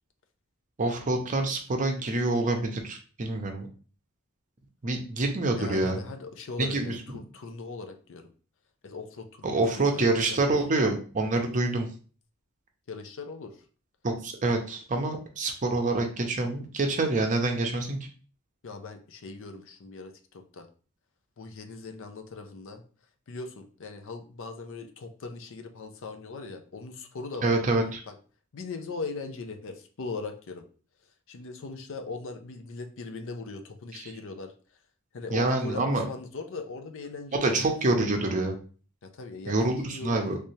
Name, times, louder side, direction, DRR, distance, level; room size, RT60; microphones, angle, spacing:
voice 1, 0.8-3.7 4.8-6.0 6.6-6.9 9.4-11.9 14.0-18.0 27.4-28.0 33.9-34.1 35.3-36.0 37.4-38.5 39.5-40.4, right 2 dB, 35° right, 3 dB, 0.6 m, -26 dB
voice 2, 5.6-8.3 8.8-10.8 12.9-13.6 18.6-20.7 21.4-22.8 23.3-27.5 28.1-28.2 28.5-30.6 31.3-34.5 35.1-37.5 39.0-40.4, left 4 dB, 60° left, 6 dB, 0.5 m, -39 dB
3.3 x 3.1 x 2.7 m, 0.39 s
head